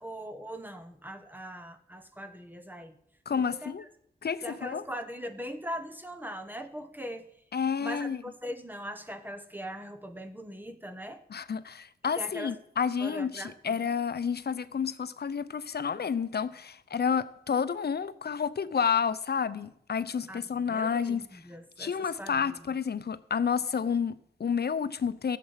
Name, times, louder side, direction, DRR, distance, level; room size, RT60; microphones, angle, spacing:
voice 1, 0.0-3.0 3.5-3.9 4.4-7.3 7.8-11.2 12.2-12.6 13.0-13.9 20.3-22.8, equal, 10° right, 1.1 m, -41 dB
voice 2, 3.3-3.8 4.2-4.8 7.5-8.2 11.3-21.3 21.8-25.4, left 6 dB, 60° left, 0.7 m, -30 dB
14.5 x 7.6 x 5.7 m
wide cardioid pair, 75°, 19 cm